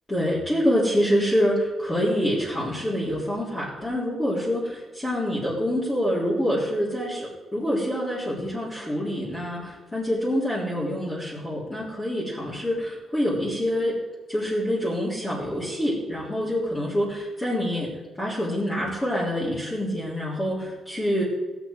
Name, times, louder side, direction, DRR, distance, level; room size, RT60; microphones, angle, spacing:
voice 1, 0.1-14.0 14.3-17.9 18.2-21.2, equal, 15° left, -10 dB, 3.6 m, -26 dB
17.0 x 8.1 x 4.7 m, 1.3 s
cardioid pair, 125°, 0 cm